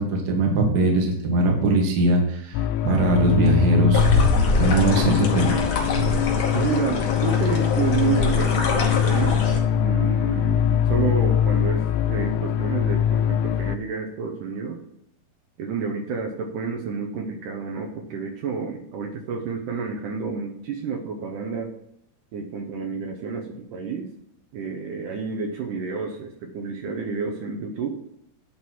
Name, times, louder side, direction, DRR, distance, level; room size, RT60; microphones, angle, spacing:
voice 1, 0.0-4.0 4.5-5.6 5.9-6.4, right 2 dB, 55° right, 0 dB, 1.1 m, -21 dB
sound 1, 2.5-13.8, left 9 dB, 85° left, 2.6 m, -23 dB
sound 2, 3.9-9.6, left 3 dB, 65° left, 1.6 m, -24 dB
voice 2, 6.5-9.4 9.7-14.8 15.6-21.7 22.3-24.1 24.5-28.0, right 5 dB, 70° right, 0 dB, 2.1 m, -29 dB
9.7 x 4.0 x 6.0 m, 0.78 s
omnidirectional pair, 4.6 m